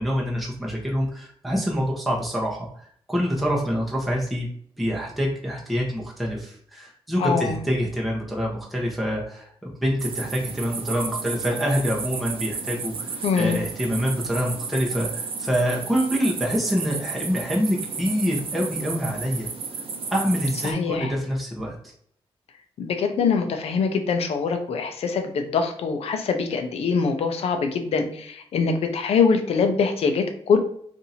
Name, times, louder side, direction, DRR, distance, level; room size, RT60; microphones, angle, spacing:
voice 1, 0.0-4.5 4.8-19.5 20.1-21.7, equal, ahead, -3 dB, 0.9 m, -26 dB
sound 1, 10.0-20.7, right 5 dB, 60° right, 0.6 m, -33 dB
voice 2, 13.2-13.6 20.7-21.1 22.8-28.0 28.5-30.6, left 5 dB, 80° left, 6 dB, 0.6 m, -23 dB
2.8 x 2.6 x 4.1 m, 0.62 s
cardioid pair, 95°, 10 cm